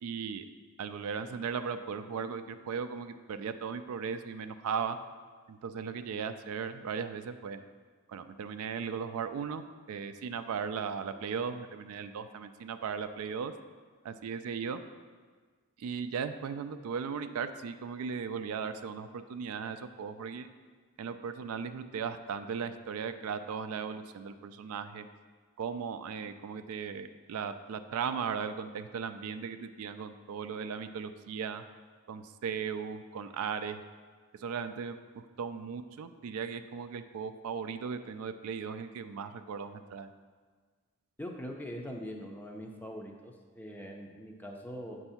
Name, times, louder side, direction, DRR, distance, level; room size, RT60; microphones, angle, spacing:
voice 1, 0.0-0.5 0.8-5.0 5.5-7.6 8.1-13.5 14.0-14.8 15.8-20.5 21.0-25.1 25.6-31.6 32.1-33.8 34.4-35.0 35.4-40.1, right 6 dB, 75° right, 10 dB, 0.3 m, -37 dB
voice 2, 41.2-45.0, equal, 10° left, 1 dB, 0.4 m, -42 dB
7.8 x 2.7 x 5.6 m, 1.5 s
head